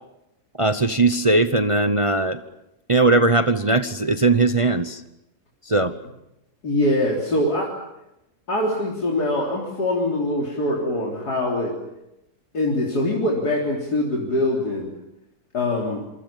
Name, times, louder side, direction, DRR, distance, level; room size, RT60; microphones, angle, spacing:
voice 1, 0.6-2.4 2.9-5.0 5.7-5.9, right 2 dB, 25° right, 10 dB, 0.8 m, -19 dB
voice 2, 6.6-7.8 8.5-11.8 12.5-14.9 15.5-16.0, left 1 dB, 80° left, -2 dB, 4.3 m, -23 dB
27.0 x 24.5 x 7.3 m, 0.88 s
omnidirectional pair, 1.7 m